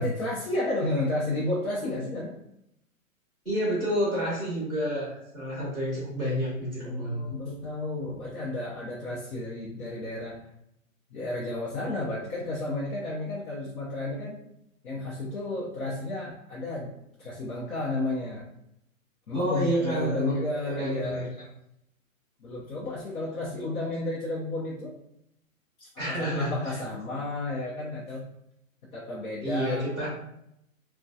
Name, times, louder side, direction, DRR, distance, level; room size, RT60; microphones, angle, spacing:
voice 1, 0.0-2.4 6.8-10.5 11.1-14.4 14.8-16.9 17.2-18.4 19.3-21.3 22.4-25.0 25.8-28.3 28.9-29.9, left 2 dB, 80° left, -6 dB, 0.8 m, -32 dB
voice 2, 3.4-7.3 19.3-21.3 26.0-26.8 29.4-30.1, equal, 5° left, -15 dB, 0.3 m, -29 dB
2.3 x 2.2 x 2.6 m, 0.79 s
hypercardioid pair, 145°, 42 cm